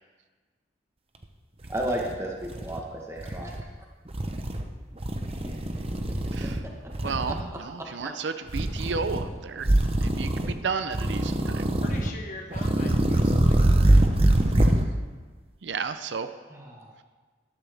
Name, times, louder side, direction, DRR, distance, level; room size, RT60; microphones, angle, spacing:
sound 1, 1.2-1.3 1.6-2.8 3.2-3.6 4.1-4.6 5.0-6.6 6.9-7.4 8.5-9.3 9.6-10.5 10.9-12.1 12.5-14.8, right 1 dB, 30° right, 0.8 m, -24 dB
voice 1, 1.7-3.6 7.0-7.1 7.5-7.6 16.5-16.9, right 1 dB, 15° right, -1 dB, 1.2 m, -33 dB
voice 2, 6.3-6.6 7.0-9.7 10.0-11.7 15.6-16.3, right 5 dB, 90° right, 10 dB, 0.6 m, -32 dB
voice 3, 11.8-14.1, left 2 dB, 45° left, 1 dB, 1.4 m, -42 dB
13.0 x 12.5 x 3.5 m, 1.4 s
head